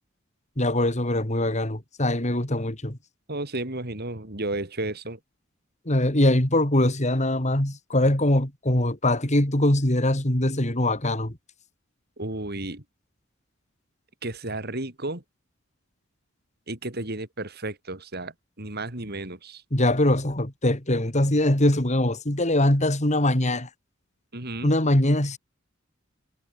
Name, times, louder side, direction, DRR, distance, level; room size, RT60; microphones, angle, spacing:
voice 1, 0.6-3.0 5.8-11.4 19.7-23.7 24.6-25.4, left 1 dB, 35° left, 3.2 m, -22 dB
voice 2, 3.3-5.2 12.2-12.8 14.2-15.2 16.7-19.6 24.3-24.7, right 2 dB, 50° right, 4.5 m, -33 dB
head